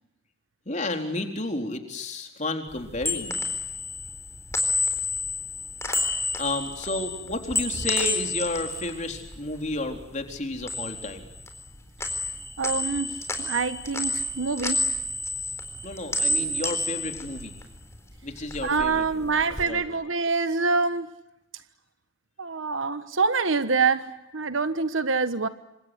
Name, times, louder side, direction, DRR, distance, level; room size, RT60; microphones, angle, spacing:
voice 1, 0.7-3.5 6.4-11.3 15.8-17.5 18.2-19.3 19.7-19.8, left 2 dB, 35° left, 5 dB, 4.0 m, -31 dB
sound 1, 2.7-10.0 10.3-11.7 12.0-18.0 18.3-19.6, left 2 dB, 15° left, 4.1 m, -30 dB
voice 2, 12.6-14.9 18.6-21.1 22.4-25.5, right 4 dB, 85° right, 12 dB, 1.3 m, -26 dB
28.0 x 26.5 x 8.1 m, 0.90 s
head